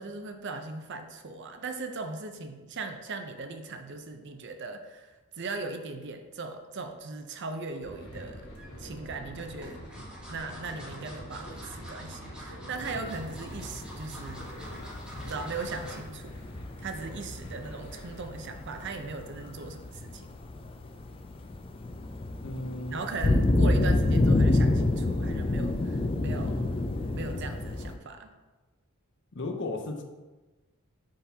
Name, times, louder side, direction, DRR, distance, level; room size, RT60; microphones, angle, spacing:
voice 1, 0.0-8.5 8.8-9.8 10.3-14.5 15.2-16.4 16.8-20.3 22.9-26.7 27.1-28.3, right 3 dB, 50° right, 6 dB, 0.5 m, -38 dB
sound 1, 7.8-18.3, equal, 75° left, 2.0 m, -45 dB
sound 2, 8.4-8.7 9.4-16.1 16.5-16.7 17.0-17.1, equal, 5° right, 1.1 m, -47 dB
sound 3, 12.8-27.9, left 2 dB, 25° left, 0.3 m, -28 dB
voice 2, 22.4-23.0 29.3-30.0, left 2 dB, 55° left, 4 dB, 0.7 m, -35 dB
10.0 x 3.8 x 2.7 m, 1.2 s
head